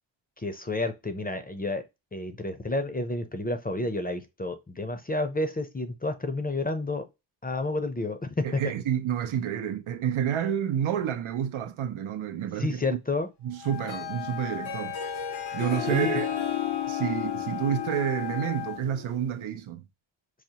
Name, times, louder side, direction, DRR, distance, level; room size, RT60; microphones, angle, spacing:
voice 1, 0.4-1.8 2.1-7.0 7.4-8.6 12.6-13.3 15.9-16.2, left 2 dB, 20° left, 0.5 m, -30 dB
voice 2, 8.4-12.8 13.4-15.0 15.5-16.3 16.9-19.8, right 9 dB, 90° right, 0.6 m, -29 dB
Wind instrument woodwind instrument, 13.5-18.8, left 18 dB, 60° left, 0.7 m, -37 dB
Harp, 13.7-19.3, left 9 dB, 90° left, 1.0 m, -34 dB
4.8 x 2.0 x 2.8 m
wide cardioid pair, 55°, 47 cm